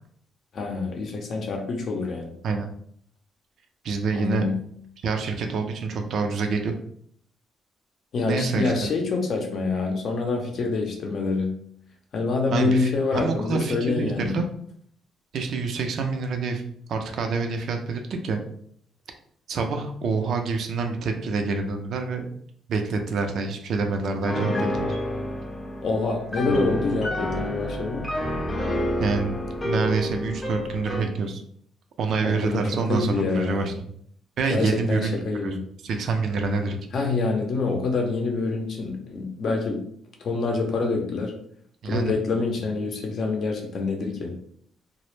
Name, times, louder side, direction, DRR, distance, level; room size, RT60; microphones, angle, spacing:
voice 1, 0.5-2.3 4.1-4.6 8.1-11.5 12.1-14.4 25.8-28.0 32.2-32.6 32.9-33.8 34.5-35.6 36.9-39.8 40.2-41.3 41.8-44.3, left 3 dB, 60° left, 2 dB, 0.6 m, -26 dB
voice 2, 3.8-4.4 5.0-6.7 8.3-8.9 12.5-14.4 15.3-16.6 16.9-18.4 19.5-22.2 22.7-24.9 29.0-29.4 29.6-31.4 32.0-33.7 34.4-35.2 35.4-35.5 35.8-36.8 41.8-42.1, right 4 dB, 65° right, 4 dB, 0.4 m, -27 dB
Piano, 24.2-31.2, left 1 dB, 15° left, 0.5 m, -29 dB
2.0 x 2.0 x 3.1 m, 0.64 s
cardioid pair, 90°, 0 cm